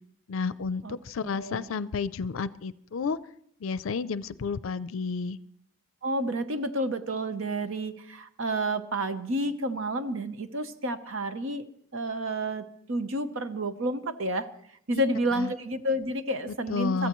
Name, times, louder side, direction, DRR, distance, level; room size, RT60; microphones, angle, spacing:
voice 1, 0.3-3.2 3.6-5.4 14.9-15.0 15.3-15.5 16.7-17.1, left 5 dB, 75° left, 16 dB, 0.4 m, -31 dB
voice 2, 1.2-1.7 6.0-11.6 11.9-14.5 14.9-17.1, right 1 dB, 75° right, 10 dB, 0.9 m, -30 dB
23.5 x 14.0 x 3.1 m, 0.68 s
head